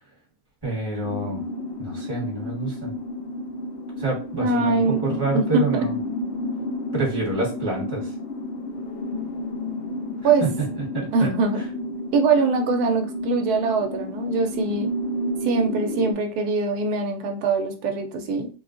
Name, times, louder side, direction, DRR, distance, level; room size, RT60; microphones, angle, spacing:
voice 1, 0.6-1.4 1.8-2.9 4.0-6.0 6.9-8.1 10.4-10.5 10.9-11.3, right 3 dB, 15° right, -4 dB, 1.2 m, -27 dB
sound 1, 1.0-16.1, left 1 dB, 65° left, 0.6 m, -31 dB
voice 2, 4.4-5.0 5.3-5.6 10.2-10.4 11.1-11.6 12.1-14.9 15.4-18.5, right 4 dB, 70° right, 5 dB, 1.0 m, -22 dB
3.5 x 2.3 x 2.4 m, 0.36 s
omnidirectional pair, 1.8 m